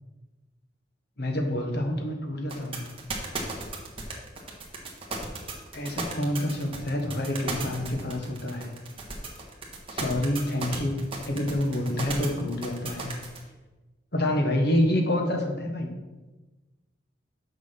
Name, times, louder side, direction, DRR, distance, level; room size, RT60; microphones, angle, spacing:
voice 1, 1.2-2.9 5.7-8.7 9.9-13.1 14.1-15.9, left 1 dB, 60° left, 2 dB, 1.4 m, -27 dB
sound 1, 2.5-13.4, right 4 dB, 30° right, 1.5 m, -35 dB
6.6 x 6.5 x 6.0 m, 1.2 s
head